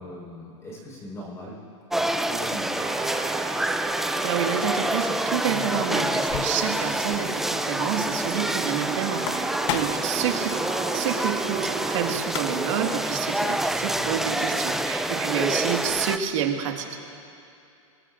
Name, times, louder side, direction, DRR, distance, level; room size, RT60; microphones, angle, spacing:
voice 1, 0.0-1.6 1.9-3.1 10.1-10.4, equal, 15° left, -4 dB, 4.8 m, -40 dB
sound 1, 1.9-16.2, right 1 dB, ahead, 0.4 m, -27 dB
sound 2, 2.8-12.2, right 8 dB, 35° right, 1.0 m, -37 dB
sound 3, 3.7-3.9 5.4-6.8 7.1-7.2 7.5-7.6 9.0-10.2 11.9-12.0 12.2-12.8, left 10 dB, 65° left, 0.9 m, -34 dB
voice 2, 4.2-17.0, right 8 dB, 70° right, 2 dB, 1.9 m, -29 dB
24.0 x 21.5 x 2.6 m, 2.6 s
supercardioid pair, 135°, 17 cm